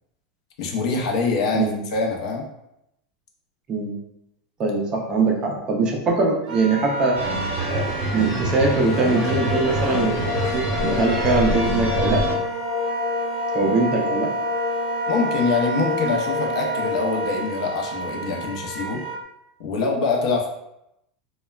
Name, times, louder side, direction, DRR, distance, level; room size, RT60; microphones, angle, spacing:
voice 1, 0.6-2.4 15.1-19.0 19.6-20.5, left 4 dB, 60° left, 1 dB, 0.6 m, -24 dB
voice 2, 4.6-7.2 7.7-7.9 8.1-12.2 13.5-14.3, right 3 dB, 20° right, 0 dB, 0.4 m, -22 dB
Wind instrument woodwind instrument, 6.4-19.2, right 4 dB, 80° right, 0.5 m, -31 dB
sound 1, 7.1-12.3, right 1 dB, 40° right, 0.8 m, -26 dB
sound 2, 8.7-17.5, left 5 dB, 15° left, 0.8 m, -28 dB
3.1 x 2.1 x 2.3 m, 0.83 s
supercardioid pair, 175°, 4 cm